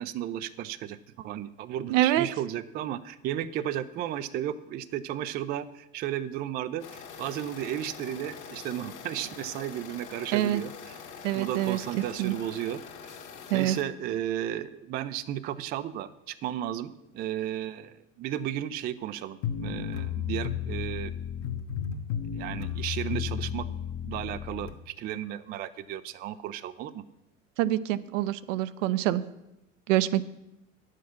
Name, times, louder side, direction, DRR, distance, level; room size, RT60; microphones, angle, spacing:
voice 1, 0.0-11.0 11.3-13.2 13.5-21.1 22.3-23.7 24.0-27.0, right 11 dB, 25° right, 12 dB, 0.3 m, -34 dB
voice 2, 1.9-2.3 10.3-10.6 11.2-12.3 13.5-13.8 27.6-29.2 29.9-30.2, right 14 dB, 60° right, 15 dB, 0.6 m, -26 dB
sound 1, 6.8-13.8, left 6 dB, 75° left, 1.8 m, -44 dB
sound 2, 19.4-24.7, left 9 dB, 40° left, 1.1 m, -33 dB
10.0 x 7.4 x 5.9 m, 0.92 s
hypercardioid pair, 85°, 42 cm